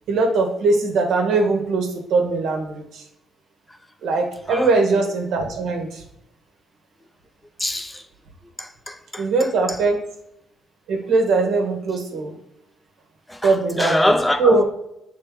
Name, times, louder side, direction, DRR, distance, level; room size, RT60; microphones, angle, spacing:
voice 1, 0.1-3.0 4.0-6.0 9.2-10.0 10.9-12.3 13.4-14.0 14.4-14.6, right 3 dB, 80° right, 1.3 m, -20 dB
voice 2, 7.6-8.0 8.6-9.8 13.3-14.6, left 1 dB, 10° left, 0.6 m, -24 dB
6.7 x 3.9 x 3.8 m
cardioid pair, 90°, 0 cm